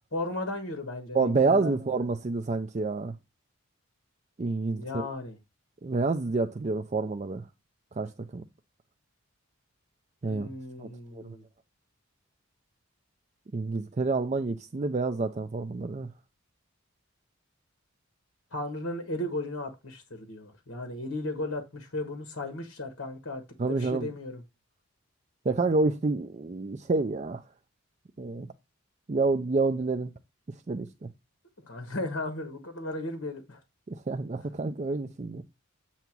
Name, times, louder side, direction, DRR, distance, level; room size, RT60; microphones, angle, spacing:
voice 1, 0.1-2.0 4.7-5.4 10.2-11.4 18.5-23.4 23.7-24.4 31.6-33.6, left 2 dB, 60° left, 1.4 m, -35 dB
voice 2, 1.1-3.1 4.4-5.0 5.8-7.4 8.0-8.4 10.2-10.5 10.8-11.4 13.5-16.1 23.6-24.1 25.5-27.4 28.2-28.5 29.1-30.1 30.7-31.1 33.9-35.4, right 3 dB, 30° right, 0.4 m, -28 dB
8.0 x 2.9 x 6.0 m
head